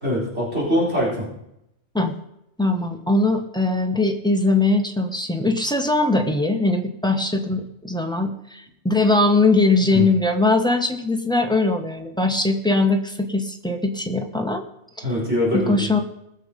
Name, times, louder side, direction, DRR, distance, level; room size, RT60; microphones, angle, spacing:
voice 1, 0.0-1.3 9.9-10.1 15.0-15.9, equal, 60° right, -6 dB, 4.7 m, -23 dB
voice 2, 2.6-14.6 15.5-16.0, left 2 dB, 5° left, 3 dB, 1.2 m, -21 dB
19.5 x 7.1 x 5.2 m, 0.80 s
omnidirectional pair, 1.3 m